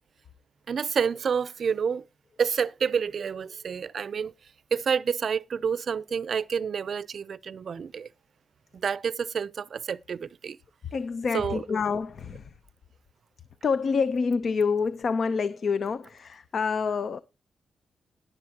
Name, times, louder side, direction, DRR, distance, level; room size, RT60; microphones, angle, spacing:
voice 1, 0.7-2.0 2.4-4.3 4.7-8.1 8.7-10.6 11.3-11.6, right 6 dB, 55° right, 0.5 m, -28 dB
voice 2, 10.9-12.5 13.6-17.2, left 5 dB, 55° left, 0.6 m, -27 dB
19.5 x 7.1 x 2.8 m
cardioid pair, 105°, 0 cm